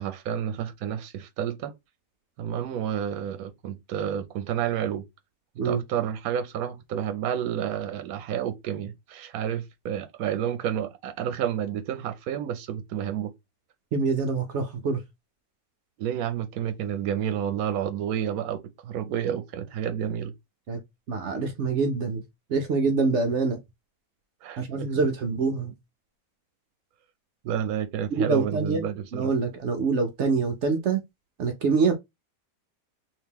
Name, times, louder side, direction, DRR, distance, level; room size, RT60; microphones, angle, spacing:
voice 1, 0.0-1.7 2.4-5.0 5.6-13.3 16.0-20.3 24.4-24.9 27.4-29.3, right 9 dB, 85° right, 1.1 m, -30 dB
voice 2, 13.9-15.0 20.7-20.8 21.1-22.2 22.5-23.6 24.6-25.7 28.1-28.9 29.1-31.0 31.4-31.9, right 4 dB, 65° right, 0.8 m, -25 dB
2.9 x 2.8 x 3.4 m
omnidirectional pair, 1.5 m